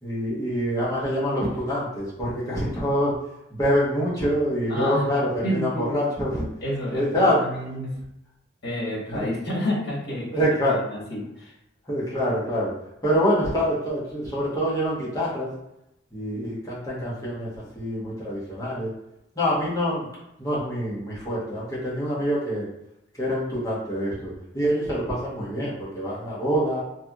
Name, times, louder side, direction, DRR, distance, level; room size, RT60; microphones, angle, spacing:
voice 1, 0.0-3.2 3.5-6.5 6.9-7.4 9.1-9.3 10.3-10.8 11.8-12.7 13.0-15.5 16.1-18.9 19.3-20.1 20.4-22.7 23.1-26.8, equal, 20° left, -8 dB, 1.0 m, -25 dB
voice 2, 4.7-5.1 5.4-6.1 6.6-7.9 8.6-10.3 10.9-11.5, equal, 60° left, -4 dB, 1.2 m, -29 dB
3.3 x 2.7 x 2.4 m, 0.84 s
head